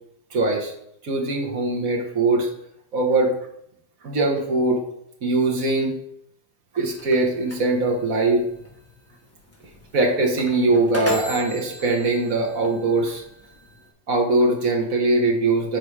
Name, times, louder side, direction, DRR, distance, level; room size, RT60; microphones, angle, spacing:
voice 1, 0.3-0.7 1.0-2.5 2.9-3.3 4.0-4.8 5.2-5.9 6.7-8.5 9.9-13.2 14.1-15.8, right 2 dB, 60° right, 0 dB, 1.8 m, -21 dB
sound 1, 6.9-13.9, left 1 dB, 10° left, 1.1 m, -36 dB
7.8 x 4.3 x 4.7 m, 0.73 s
omnidirectional pair, 1.7 m